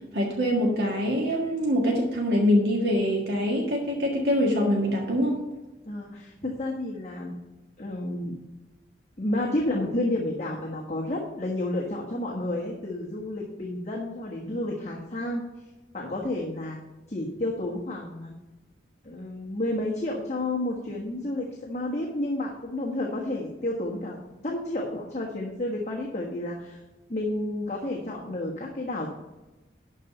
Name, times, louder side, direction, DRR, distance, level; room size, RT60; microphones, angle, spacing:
voice 1, 0.1-5.4, equal, 65° right, -2 dB, 1.7 m, -24 dB
voice 2, 5.9-7.3 7.8-8.4 9.2-15.4 15.9-16.8 17.1-18.3 19.0-24.2 24.4-26.8 27.1-29.1, left 1 dB, 35° left, -3 dB, 1.3 m, -31 dB
11.5 x 4.1 x 6.7 m, 1.1 s
head